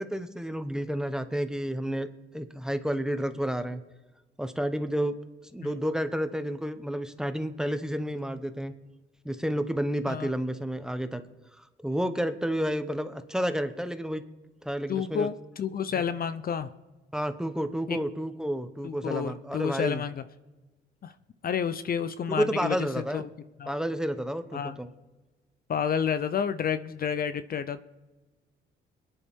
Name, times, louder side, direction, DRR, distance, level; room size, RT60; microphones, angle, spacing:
voice 1, 0.0-2.1 2.3-3.8 4.4-5.1 5.5-8.7 9.2-11.2 11.6-14.2 14.6-15.3 17.1-20.0 22.3-23.2 23.7-24.9, equal, 5° right, 9 dB, 1.0 m, -30 dB
voice 2, 14.9-16.7 17.9-18.0 18.8-20.2 21.0-21.1 21.4-23.2 23.6-23.7 24.5-24.8 25.7-27.8, left 7 dB, 50° left, 12 dB, 0.6 m, -30 dB
22.5 x 10.0 x 3.7 m, 1.2 s
cardioid pair, 90°, 20 cm